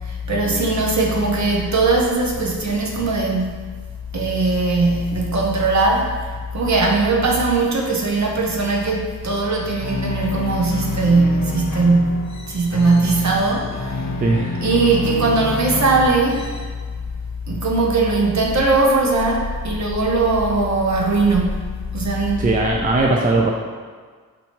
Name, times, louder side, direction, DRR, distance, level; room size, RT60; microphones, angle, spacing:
voice 1, 0.0-3.6 4.1-14.0 14.6-16.5 17.5-21.6 21.9-22.5, right 3 dB, 50° right, -1 dB, 0.7 m, -19 dB
sound 1, 9.8-16.7, left 2 dB, 50° left, 0.6 m, -28 dB
voice 2, 14.2-14.6 22.4-23.5, right 2 dB, 25° right, -1 dB, 0.4 m, -19 dB
4.4 x 2.7 x 2.9 m, 1.5 s
cardioid pair, 65°, 36 cm